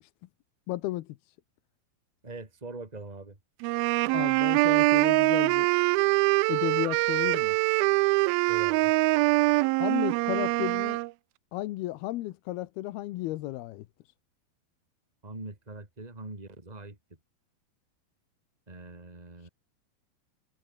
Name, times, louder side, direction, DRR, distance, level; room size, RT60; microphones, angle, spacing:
voice 1, 0.7-1.1 4.1-5.7 6.5-7.6 9.8-11.0 11.5-13.9, left 16 dB, 85° left, 2.8 m, -33 dB
voice 2, 2.2-3.4 8.5-8.9 15.2-17.0 18.7-19.5, right 2 dB, 10° right, 3.7 m, -42 dB
sound 1, 3.6-11.1, right 21 dB, 80° right, 2.4 m, -24 dB
omnidirectional pair, 4.4 m